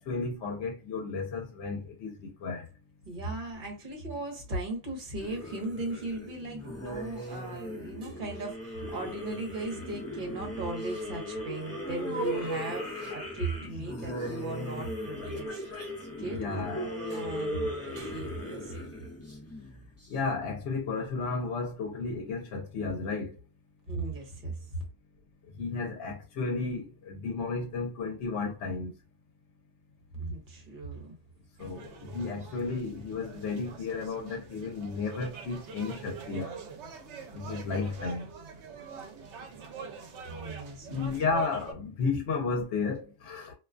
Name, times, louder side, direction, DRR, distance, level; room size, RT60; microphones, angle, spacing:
voice 1, 0.0-2.7 13.6-13.7 16.2-16.9 20.1-23.3 25.6-28.9 31.6-36.5 37.3-38.3 40.9-43.5, left 4 dB, 75° left, 1.0 m, -33 dB
voice 2, 3.1-15.6 16.2-16.4 17.1-18.9 23.9-24.8 30.2-31.1 40.2-41.1, right 2 dB, 45° right, 1.0 m, -37 dB
sound 1, 5.2-20.1, equal, 15° left, 0.7 m, -37 dB
sound 2, 31.6-41.7, right 6 dB, 75° right, 0.9 m, -45 dB
2.5 x 2.3 x 2.4 m
omnidirectional pair, 1.2 m